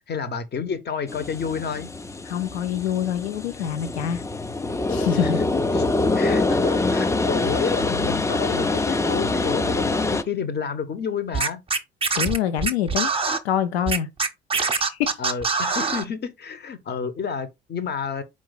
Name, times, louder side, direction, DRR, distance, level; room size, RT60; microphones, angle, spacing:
voice 1, 0.1-1.9 5.2-5.3 5.7-5.8 6.1-11.6 15.2-18.2, left 6 dB, 35° left, 0.8 m, -29 dB
sound 1, 1.1-10.2, left 2 dB, 10° left, 0.4 m, -25 dB
voice 2, 2.3-4.2 4.9-5.4 12.1-13.1 13.4-14.1 14.5-15.2, left 9 dB, 80° left, 0.6 m, -25 dB
Scratching (performance technique), 11.3-13.4 13.9-16.0, right 4 dB, 20° right, 0.7 m, -23 dB
4.5 x 2.4 x 4.0 m
figure-of-eight pair, 50°, 31 cm